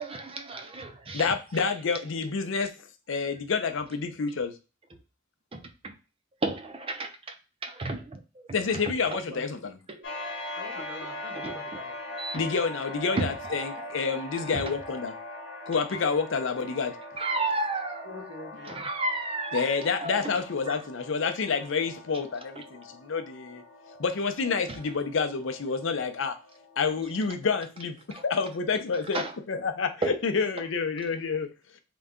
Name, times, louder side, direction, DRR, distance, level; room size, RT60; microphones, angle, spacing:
voice 1, 0.0-1.2 5.5-5.9 6.4-7.1 7.6-8.2 9.9-10.0 11.4-11.6 12.2-12.4 13.2-13.3 17.2-18.1 18.7-19.7 20.0-20.2 20.7-20.8 29.1-29.2 30.0-30.1, right 2 dB, 30° right, 0.5 m, -31 dB
voice 2, 1.1-2.7 3.1-4.5 8.5-9.8 12.3-15.1 15.7-17.0 19.5-23.6 24.0-26.4 26.8-31.5, left 5 dB, 85° left, 0.5 m, -28 dB
sound 1, 10.0-27.3, left 2 dB, 70° left, 1.0 m, -42 dB
voice 3, 10.5-11.9 18.0-18.8, left 1 dB, 75° right, 1.2 m, -43 dB
3.8 x 2.2 x 3.6 m
head